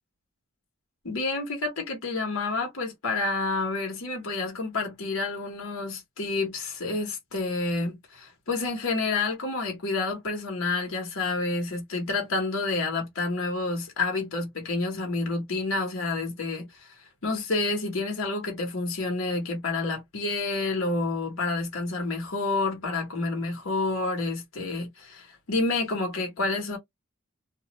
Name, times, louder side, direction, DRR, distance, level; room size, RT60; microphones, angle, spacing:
voice 1, 1.0-16.9 17.2-26.8, left 3 dB, 85° left, 1.0 m, -29 dB
2.3 x 2.1 x 2.9 m
head